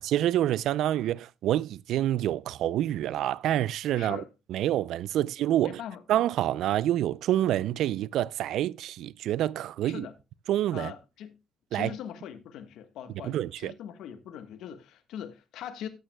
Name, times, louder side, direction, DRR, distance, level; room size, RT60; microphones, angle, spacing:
voice 1, 0.1-4.2 4.5-5.8 6.1-10.1 10.5-10.9 11.7-11.9 13.2-13.7, right 12 dB, 80° right, 0.4 m, -27 dB
voice 2, 3.9-4.3 5.2-5.3 5.6-6.0 9.8-10.2 10.7-11.4 11.7-15.9, left 9 dB, 85° left, 1.4 m, -41 dB
14.0 x 9.2 x 2.2 m
cardioid pair, 90°, 0 cm